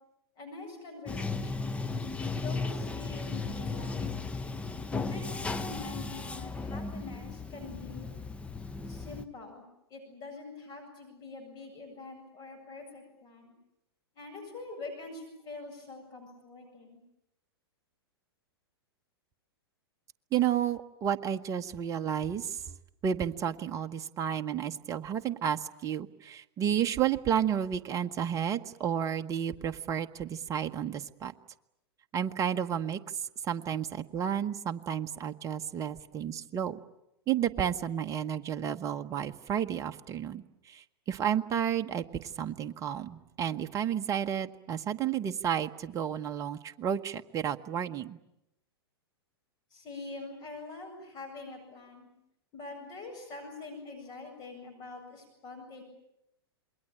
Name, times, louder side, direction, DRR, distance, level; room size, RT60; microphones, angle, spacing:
voice 1, 0.4-1.8 2.3-4.4 5.0-8.1 8.9-9.6 9.9-13.5 14.1-17.0 49.7-52.1 52.5-55.8, left 3 dB, 30° left, 3 dB, 7.8 m, -45 dB
Bathtub (filling or washing), 1.1-9.2, left 3 dB, 10° left, 0.9 m, -35 dB
voice 2, 20.3-22.6 23.0-31.3 32.1-33.0 33.4-36.8 37.3-48.2, right 9 dB, 25° right, 7 dB, 1.1 m, -31 dB
27.5 x 22.0 x 8.9 m, 0.85 s
figure-of-eight pair, 105°, 13 cm